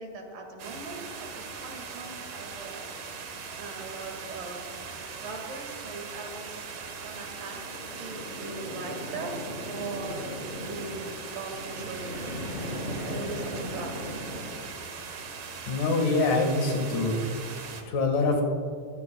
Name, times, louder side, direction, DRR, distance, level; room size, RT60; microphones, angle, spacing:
voice 1, 0.0-2.9 3.6-6.7 6.9-7.6 8.0-9.3 9.7-12.8 13.1-13.9, right 3 dB, 80° right, 2 dB, 3.7 m, -40 dB
sound 1, 0.6-17.8, right 5 dB, 55° right, 1.9 m, -40 dB
sound 2, 6.8-14.5, left 1 dB, 20° left, 2.5 m, -38 dB
voice 2, 15.7-17.1 17.9-18.4, left 3 dB, 75° left, 2 dB, 3.3 m, -24 dB
22.5 x 16.5 x 2.3 m, 2.4 s
omnidirectional pair, 3.8 m